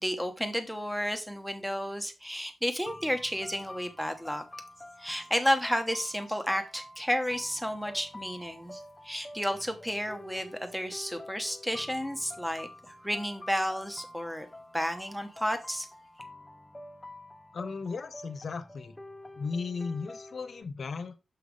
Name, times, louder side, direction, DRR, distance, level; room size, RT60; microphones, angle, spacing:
voice 1, 0.0-4.4 5.0-14.5 14.7-15.9, equal, ahead, 0.9 m, -32 dB
sound 1, 2.9-20.6, left 1 dB, 15° left, 0.6 m, -48 dB
voice 2, 17.5-19.0 19.3-21.2, left 4 dB, 50° left, 0.9 m, -36 dB
7.1 x 5.6 x 3.3 m
wide cardioid pair, 130°, 0 cm